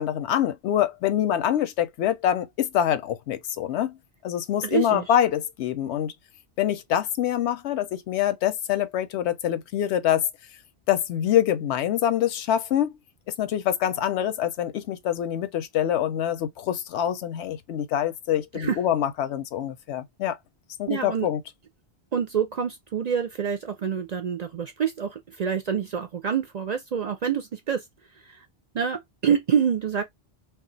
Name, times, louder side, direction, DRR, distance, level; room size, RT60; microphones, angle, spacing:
voice 1, 0.0-4.0 4.2-6.1 6.6-10.3 10.9-13.0 13.4-20.4 20.8-21.4, left 10 dB, 85° left, 0.9 m, -25 dB
voice 2, 4.6-5.1 18.5-18.8 20.9-21.3 22.1-27.8 28.3-28.5 28.7-30.0, right 7 dB, 55° right, 0.5 m, -27 dB
2.4 x 2.3 x 3.8 m
omnidirectional pair, 1.1 m